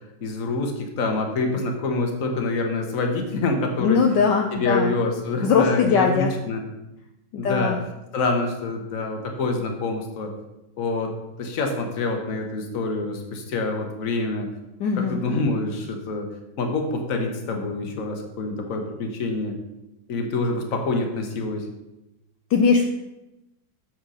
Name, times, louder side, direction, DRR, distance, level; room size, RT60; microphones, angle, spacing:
voice 1, 0.2-4.0 4.5-6.6 7.4-7.8 8.1-10.3 10.8-14.5 15.0-16.3 16.6-19.6 20.1-21.6, left 3 dB, 50° left, 4 dB, 1.4 m, -26 dB
voice 2, 3.8-4.9 5.4-6.4 7.3-7.8 14.8-15.2 22.5-22.8, left 5 dB, 70° left, 2 dB, 1.3 m, -20 dB
7.3 x 4.6 x 6.3 m, 0.93 s
omnidirectional pair, 2.1 m